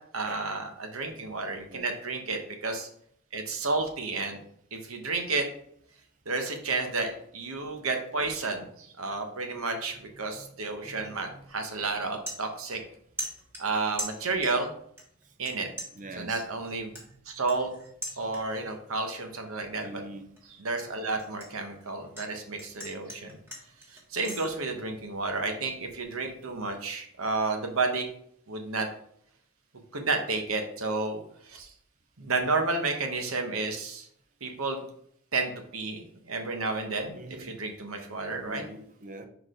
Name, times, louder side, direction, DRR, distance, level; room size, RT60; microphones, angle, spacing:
voice 1, 0.1-2.9 3.3-4.4 4.7-5.5 6.3-12.8 13.6-14.7 15.4-15.7 16.2-16.9 17.3-17.7 18.1-20.0 20.6-23.4 24.1-28.1 28.5-28.9 29.9-31.7 32.2-34.1 34.4-34.8 35.3-38.6, right 3 dB, 85° right, 5 dB, 1.1 m, -31 dB
voice 2, 10.8-11.2 15.9-16.4 18.1-18.3 19.8-20.3 37.1-37.5 38.5-39.3, right 2 dB, 40° right, 7 dB, 0.7 m, -44 dB
sound 1, 11.4-11.5 11.9-12.9 13.2-14.7 15.0-15.5 15.8-18.7 19.1-19.4 19.8-22.3 22.6-24.5, right 1 dB, 10° right, 1.5 m, -40 dB
4.8 x 4.2 x 4.9 m, 0.67 s
head